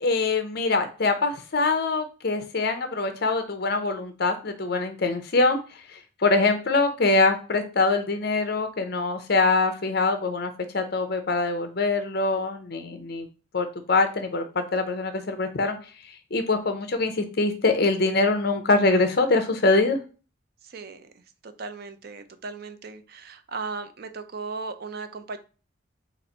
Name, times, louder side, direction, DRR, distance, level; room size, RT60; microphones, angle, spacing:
voice 1, 0.0-5.6 5.9-13.3 13.5-15.8 16.3-20.0, left 3 dB, 50° left, 7 dB, 0.7 m, -24 dB
voice 2, 20.6-21.1 21.4-25.4, right 4 dB, 50° right, 9 dB, 0.5 m, -37 dB
4.2 x 2.5 x 4.2 m, 0.34 s
head